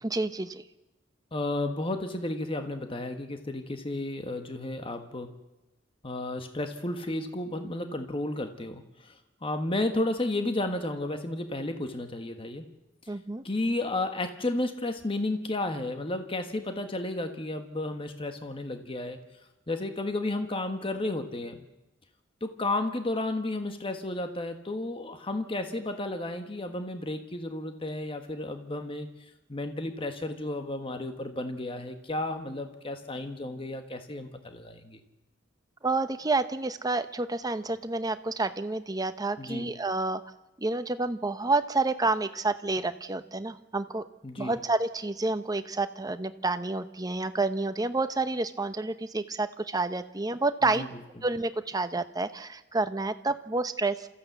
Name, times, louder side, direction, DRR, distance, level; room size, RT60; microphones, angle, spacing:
voice 1, 0.0-0.6 13.1-13.4 35.8-40.2 40.6-44.0 44.4-50.8 51.2-54.1, right 3 dB, 20° right, 10 dB, 0.9 m, -29 dB
voice 2, 1.3-5.3 6.0-12.6 13.4-19.2 19.7-21.6 22.4-29.1 29.5-35.0 39.4-39.7 44.2-44.6 50.6-50.9, left 2 dB, 30° left, 7 dB, 1.4 m, -32 dB
27.5 x 14.5 x 8.2 m, 1.0 s
head